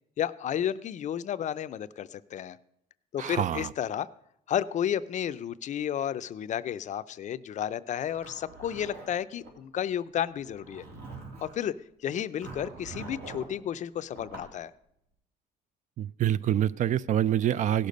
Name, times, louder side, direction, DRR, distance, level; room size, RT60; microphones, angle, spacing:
voice 1, 0.2-2.6 3.1-4.1 4.5-10.8 11.4-11.7 12.0-14.7, left 10 dB, 45° left, 15 dB, 0.5 m, -32 dB
voice 2, 3.2-3.7 16.0-17.9, right 11 dB, 50° right, 19 dB, 0.4 m, -26 dB
Zipper (clothing), 8.0-9.5 10.4-11.6 12.4-13.5 14.1-14.5, right 3 dB, 75° right, 3.4 m, -44 dB
16.5 x 6.7 x 5.2 m, 0.79 s
cardioid pair, 110°, 17 cm